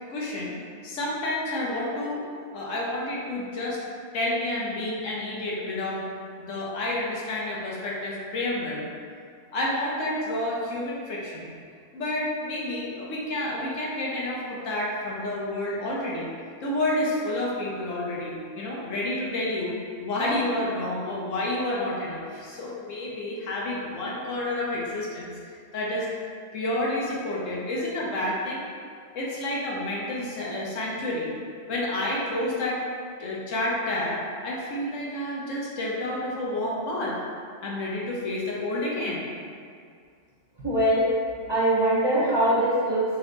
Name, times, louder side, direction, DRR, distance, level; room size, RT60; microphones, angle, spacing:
voice 1, 0.1-0.6 0.8-2.2 2.5-3.8 4.1-6.1 6.4-8.8 9.5-11.5 11.9-16.3 16.6-26.1 26.5-28.6 29.1-31.3 31.7-32.8 33.2-37.2 37.6-39.3, left 1 dB, 80° left, -4 dB, 1.2 m, -29 dB
voice 2, 40.6-41.1 41.5-43.0, right 1 dB, 25° right, -11 dB, 0.8 m, -22 dB
4.4 x 2.1 x 3.8 m, 2.2 s
omnidirectional pair, 1.3 m